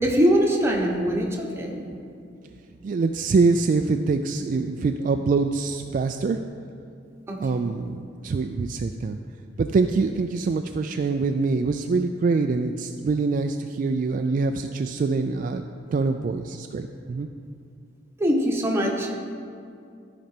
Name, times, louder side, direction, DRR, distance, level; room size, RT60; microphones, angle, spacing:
voice 1, 0.0-1.8 7.3-7.4 18.2-19.1, equal, 15° right, -1 dB, 1.1 m, -22 dB
voice 2, 2.8-6.4 7.4-9.2 9.6-17.3, right 4 dB, 45° right, 6 dB, 0.3 m, -24 dB
13.5 x 5.1 x 4.4 m, 2.4 s
head